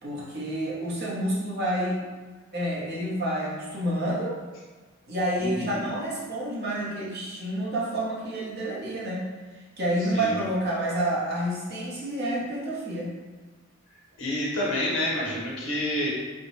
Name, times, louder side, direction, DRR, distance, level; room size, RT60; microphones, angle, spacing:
voice 1, 0.0-2.0 2.5-4.4 5.1-13.1, right 1 dB, 50° right, -6 dB, 0.9 m, -29 dB
voice 2, 5.4-5.8 10.1-10.3 14.2-16.1, left 1 dB, 65° left, -5 dB, 1.1 m, -28 dB
4.4 x 2.2 x 2.9 m, 1.4 s
head